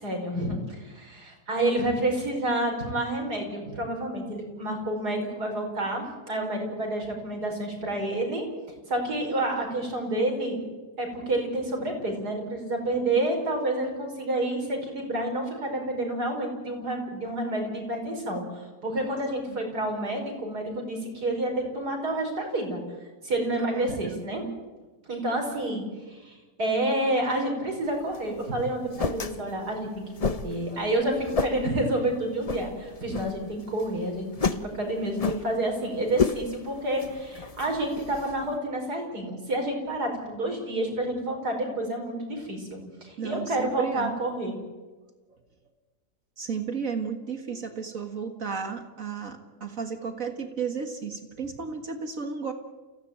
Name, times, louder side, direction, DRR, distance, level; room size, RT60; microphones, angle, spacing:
voice 1, 0.0-8.4 8.9-10.6 11.0-22.8 23.2-24.4 25.1-29.9 30.2-34.3 34.6-44.6, right 1 dB, 80° right, 2 dB, 5.9 m, -29 dB
voice 2, 23.6-24.6 43.2-44.1 46.4-52.5, right 6 dB, 55° right, 7 dB, 2.1 m, -33 dB
sound 1, 27.9-38.6, left 5 dB, 30° left, 0.7 m, -33 dB
28.5 x 16.5 x 9.0 m, 1.3 s
omnidirectional pair, 1.7 m